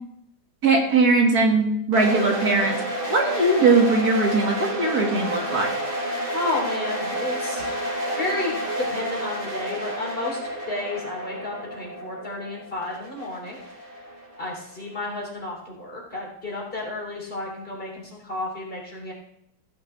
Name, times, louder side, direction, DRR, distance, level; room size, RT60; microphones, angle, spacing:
voice 1, 0.6-2.8 3.1-5.7, right 3 dB, 60° right, 0 dB, 2.6 m, -20 dB
sound 1, 1.9-14.8, right 1 dB, 45° right, 3.4 m, -30 dB
voice 2, 6.3-7.8 8.2-10.4 10.7-13.6 14.4-19.1, left 2 dB, 30° left, -2 dB, 3.6 m, -32 dB
16.0 x 10.5 x 3.4 m, 0.74 s
omnidirectional pair, 1.8 m